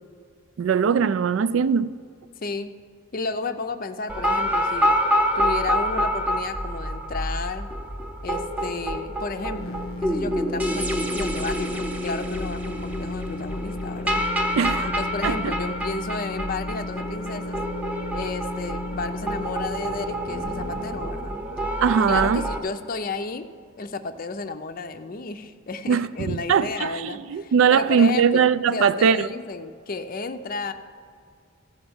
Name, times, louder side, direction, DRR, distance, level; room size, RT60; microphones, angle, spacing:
voice 1, 0.6-1.9 14.6-14.9 15.2-15.5 21.8-22.4 25.9-29.3, right 6 dB, 70° right, 0.3 m, -20 dB
voice 2, 2.4-2.7 3.1-4.9 5.3-7.7 8.2-14.2 14.8-17.6 18.1-21.4 22.1-23.5 23.8-30.7, left 3 dB, 40° left, 0.5 m, -32 dB
sound 1, 4.1-22.6, equal, 5° right, 0.6 m, -27 dB
sound 2, 9.4-21.1, left 2 dB, 85° left, 0.6 m, -35 dB
15.0 x 5.2 x 7.1 m
head